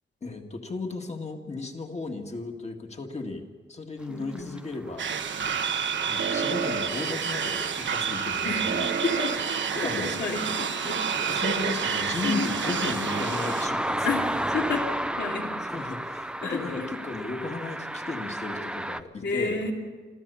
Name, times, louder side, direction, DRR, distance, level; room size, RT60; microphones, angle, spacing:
voice 1, 0.2-5.1 6.1-8.9 9.8-10.3 11.3-14.3 15.6-19.6, left 3 dB, 35° left, 3 dB, 2.0 m, -35 dB
voice 2, 4.1-4.5 8.4-8.6 9.0-9.3 9.7-11.1 12.2-12.7 14.0-14.2 14.5-14.9 15.2-15.5 16.4-16.8 19.2-19.7, left 4 dB, 75° left, 1 dB, 2.8 m, -30 dB
sound 1, 4.3-19.0, right 1 dB, 5° right, 0.5 m, -34 dB
sound 2, 5.0-13.7, right 6 dB, 85° right, 1.2 m, -29 dB
26.0 x 14.5 x 7.0 m, 1.5 s
wide cardioid pair, 150°, 19 cm